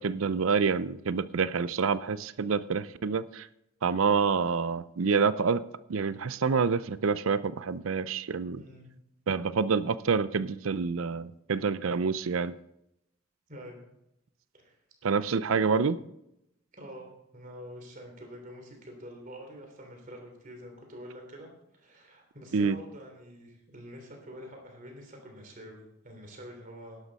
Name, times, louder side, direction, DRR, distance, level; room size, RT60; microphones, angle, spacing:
voice 1, 0.0-3.5 3.8-8.6 9.3-12.6 15.0-16.0 22.5-22.8, right 5 dB, 75° right, 16 dB, 0.5 m, -27 dB
voice 2, 8.6-8.9 13.5-13.8 14.5-14.8 16.8-21.5 21.7-27.0, equal, 40° right, 2 dB, 3.3 m, -46 dB
11.5 x 11.5 x 4.1 m, 0.81 s
head